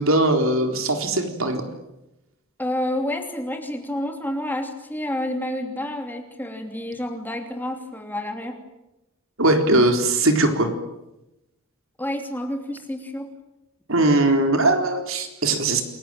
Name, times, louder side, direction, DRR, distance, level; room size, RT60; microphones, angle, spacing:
voice 1, 0.0-1.6 9.4-10.7 13.9-15.8, right 2 dB, 65° right, 5 dB, 4.0 m, -20 dB
voice 2, 2.6-8.6 12.0-13.3, left 1 dB, 10° left, 4 dB, 3.0 m, -29 dB
29.0 x 22.0 x 9.1 m, 0.94 s
head